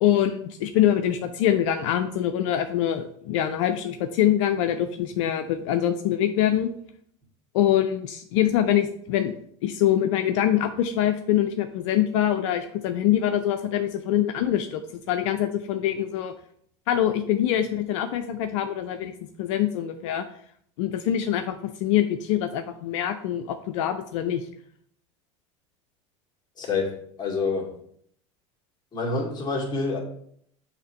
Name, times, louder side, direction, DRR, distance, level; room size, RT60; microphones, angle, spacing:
voice 1, 0.0-6.7 7.5-9.4 9.6-14.8 15.1-16.3 16.9-20.3 20.8-24.5, left 11 dB, 75° left, 7 dB, 0.5 m, -24 dB
voice 2, 26.6-27.7 28.9-30.0, left 4 dB, 25° left, -1 dB, 2.2 m, -27 dB
6.5 x 2.9 x 5.4 m, 0.65 s
hypercardioid pair, 95°, 16 cm